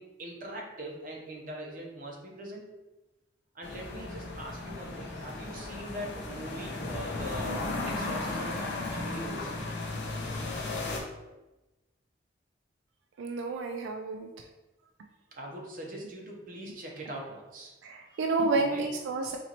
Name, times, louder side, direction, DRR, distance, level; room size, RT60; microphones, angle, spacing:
voice 1, 0.0-2.6 3.5-9.5 15.3-17.7 18.1-18.2 18.7-18.8, right 1 dB, 45° right, -1 dB, 0.8 m, -41 dB
sound 1, 3.6-11.0, left 2 dB, 65° left, 0.6 m, -35 dB
voice 2, 13.2-14.3 17.8-19.4, right 3 dB, 85° right, 3 dB, 0.3 m, -30 dB
4.2 x 3.0 x 2.9 m, 1.0 s
head